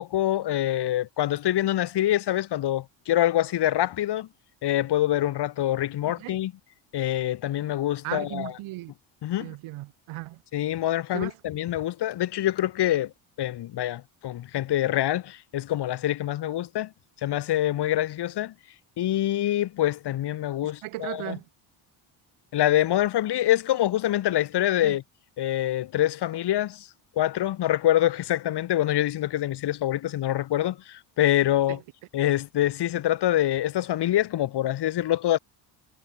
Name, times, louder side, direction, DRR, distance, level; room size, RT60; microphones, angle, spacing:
voice 1, 0.0-4.3 4.6-6.5 6.9-8.5 9.2-9.5 10.5-13.1 13.4-16.9 17.2-18.5 19.0-21.4 22.5-25.0 25.4-26.9 27.2-31.8 32.1-35.4, left 13 dB, 55° left, 1.1 m, -25 dB
voice 2, 6.0-6.4 8.0-8.9 9.4-10.4 11.1-11.3 20.8-21.4 24.8-25.0 31.7-31.8, right 17 dB, 80° right, 1.9 m, -36 dB
cardioid pair, 110°, 49 cm